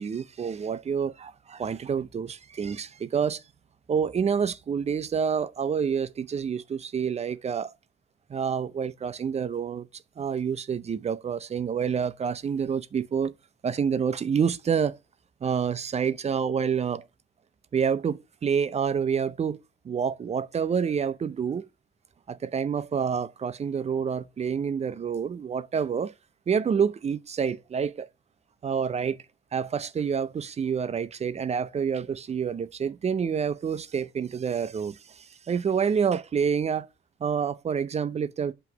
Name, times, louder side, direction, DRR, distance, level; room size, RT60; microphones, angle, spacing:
voice 1, 0.0-3.4 3.9-7.7 8.3-9.9 10.2-13.3 13.6-15.0 15.4-17.0 17.7-19.6 19.8-21.7 22.3-26.1 26.5-28.1 28.6-29.2 29.5-36.9 37.2-38.5, right 7 dB, 35° right, 0.5 m, -28 dB
7.7 x 3.0 x 5.9 m
cardioid pair, 90°, 20 cm